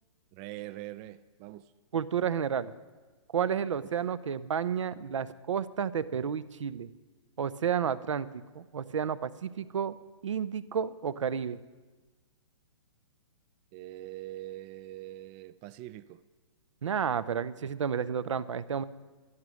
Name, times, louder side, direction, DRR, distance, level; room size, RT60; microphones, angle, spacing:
voice 1, 0.3-1.7 13.7-16.2, right 15 dB, 25° right, 14 dB, 0.3 m, -43 dB
voice 2, 1.9-2.7 3.3-6.9 7.4-8.3 8.5-10.0 10.2-11.6 16.8-18.8, right 7 dB, 80° right, 16 dB, 0.7 m, -31 dB
12.5 x 10.5 x 6.3 m, 1.3 s
hypercardioid pair, 135°, 16 cm